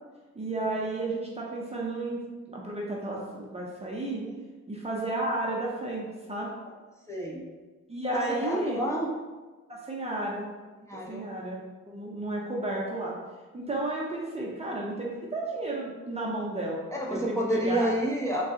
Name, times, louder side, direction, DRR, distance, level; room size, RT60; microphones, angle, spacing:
voice 1, 0.3-2.2 2.5-4.3 4.7-6.5 7.9-8.8 9.7-10.5 11.1-13.2 13.5-16.8 17.1-17.9, right 2 dB, 20° right, -4 dB, 0.7 m, -32 dB
voice 2, 7.1-7.4 8.1-9.1 10.9-11.2 16.9-18.4, right 1 dB, 10° left, -4 dB, 0.8 m, -29 dB
3.7 x 2.3 x 3.7 m, 1.3 s
cardioid pair, 70°, 32 cm